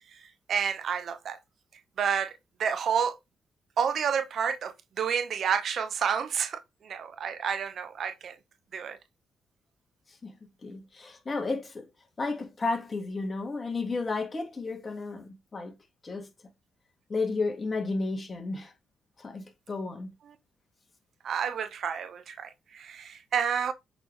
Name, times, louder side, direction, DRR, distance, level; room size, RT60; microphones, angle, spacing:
voice 1, 0.1-1.4 2.0-3.2 3.8-8.4 8.7-9.0 20.2-20.4 21.2-23.7, right 7 dB, 60° right, 0.8 m, -30 dB
voice 2, 10.6-11.9 12.2-15.7 16.0-16.3 17.1-18.7 19.2-20.1, left 3 dB, 30° left, 1.9 m, -32 dB
8.0 x 4.0 x 3.2 m
cardioid pair, 105°, 0 cm